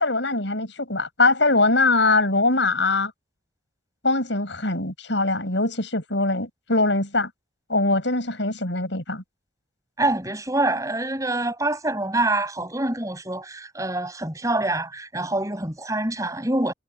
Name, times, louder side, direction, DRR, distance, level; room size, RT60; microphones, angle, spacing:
voice 1, 0.0-3.1 4.0-7.3 7.7-9.2, left 2 dB, 70° left, 6.6 m, -22 dB
voice 2, 10.0-16.7, right 2 dB, 15° right, 5.4 m, -25 dB
head